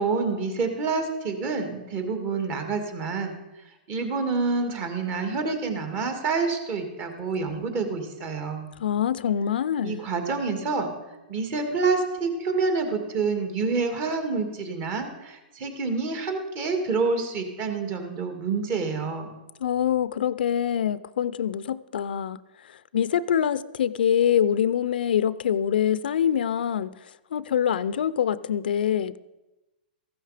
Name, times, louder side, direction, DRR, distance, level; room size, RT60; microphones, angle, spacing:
voice 1, 0.0-3.4 3.9-8.7 9.8-10.9 11.3-19.3, right 4 dB, 35° right, 2.3 m, -27 dB
voice 2, 8.8-10.0 19.6-22.4 22.6-26.9 27.3-29.2, left 9 dB, 80° left, 0.5 m, -25 dB
15.0 x 12.0 x 5.0 m
hypercardioid pair, 140°, 5 cm